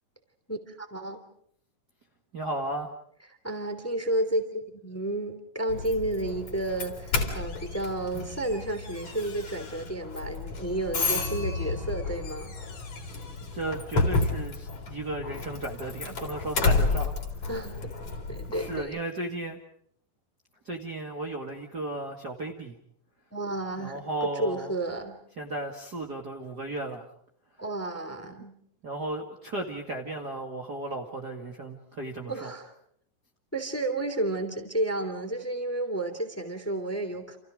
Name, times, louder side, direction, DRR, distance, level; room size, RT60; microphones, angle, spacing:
voice 1, 0.5-1.2 3.3-12.5 16.0-16.1 17.5-17.9 18.3-19.0 23.3-25.2 27.6-28.5 32.3-32.7 33.5-37.4, right 1 dB, 5° left, 7 dB, 2.5 m, -32 dB
voice 2, 2.3-2.9 13.5-17.5 18.5-19.6 20.6-22.7 23.8-24.7 25.4-27.1 28.8-32.5, right 2 dB, 35° right, 1 dB, 2.2 m, -35 dB
Doorbell, 5.7-18.8, left 3 dB, 50° left, 4.9 m, -31 dB
30.0 x 28.5 x 5.1 m, 0.65 s
omnidirectional pair, 4.0 m